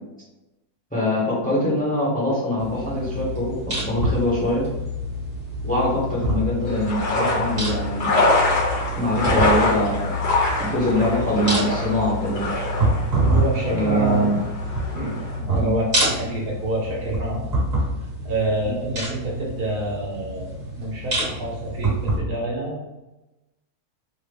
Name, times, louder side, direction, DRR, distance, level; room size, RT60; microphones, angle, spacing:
voice 1, 0.9-4.7 5.6-8.2 8.9-10.2 10.6-12.5 13.7-14.4 15.6-15.7 18.6-18.8, left 1 dB, 5° left, -7 dB, 0.9 m, -23 dB
sound 1, 2.6-22.2, right 1 dB, 40° right, 1.7 m, -27 dB
sound 2, 6.7-15.4, left 2 dB, 50° left, 1.3 m, -25 dB
voice 2, 13.2-14.3 14.9-17.4 18.2-20.5 20.8-22.8, right 1 dB, 80° right, -3 dB, 1.5 m, -27 dB
3.8 x 2.2 x 3.4 m, 1.0 s
omnidirectional pair, 1.6 m